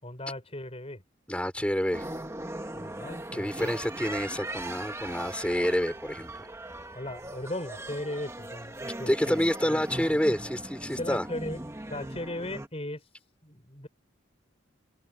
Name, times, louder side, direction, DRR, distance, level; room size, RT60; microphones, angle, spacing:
voice 1, 0.0-1.0 2.7-3.7 6.9-9.8 11.0-11.6 11.9-13.0 13.4-13.9, left 1 dB, 30° left, 5.0 m, -37 dB
voice 2, 1.3-2.0 3.3-6.5 9.1-11.3, equal, 5° left, 4.4 m, -28 dB
sound 1, 1.9-12.7, right 1 dB, 15° right, 1.4 m, -39 dB
open air
head